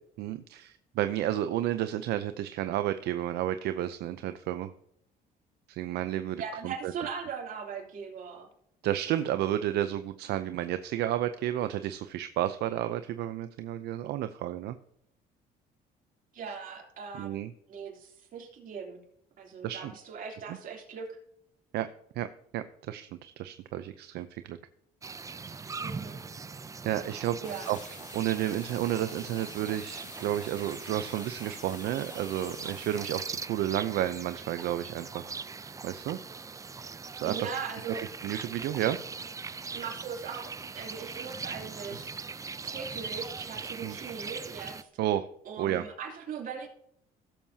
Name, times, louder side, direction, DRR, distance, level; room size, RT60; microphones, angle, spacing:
voice 1, 0.2-4.7 5.7-6.9 8.8-14.8 17.2-17.5 19.6-19.9 21.7-21.9 22.2-22.3 22.5-24.6 26.8-27.4 27.7-27.9 28.1-35.3 35.8-36.2 37.1-37.3 38.2-39.0 43.8-44.0 45.0-45.3 45.6-45.8, right 12 dB, 75° right, 10 dB, 0.6 m, -31 dB
voice 2, 6.4-8.5 16.3-17.4 17.7-19.0 19.4-21.2 25.8-26.2 27.4-27.7 37.2-38.0 39.7-42.1 42.6-44.9 45.4-46.7, right 6 dB, 55° right, 1 dB, 3.1 m, -39 dB
sound 1, 25.0-44.8, right 4 dB, 20° right, 0.5 m, -41 dB
sound 2, 27.4-33.2, left 6 dB, 45° left, 1.9 m, -49 dB
16.0 x 7.3 x 2.8 m, 0.72 s
cardioid pair, 110°, 17 cm